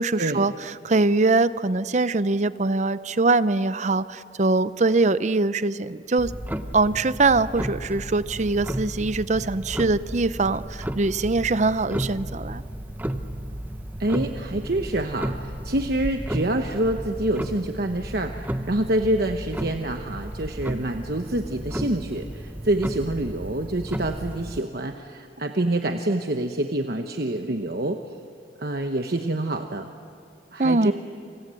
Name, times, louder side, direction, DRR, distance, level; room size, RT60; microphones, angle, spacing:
voice 1, 0.0-6.3 6.7-12.6 30.6-30.9, right 3 dB, 40° right, 15 dB, 0.7 m, -22 dB
Clock, 6.2-24.6, right 1 dB, 10° right, 0.9 m, -33 dB
voice 2, 14.0-28.0 28.6-29.9 30.5-30.9, right 1 dB, 55° right, 5 dB, 1.1 m, -26 dB
29.5 x 26.5 x 7.7 m, 2.3 s
head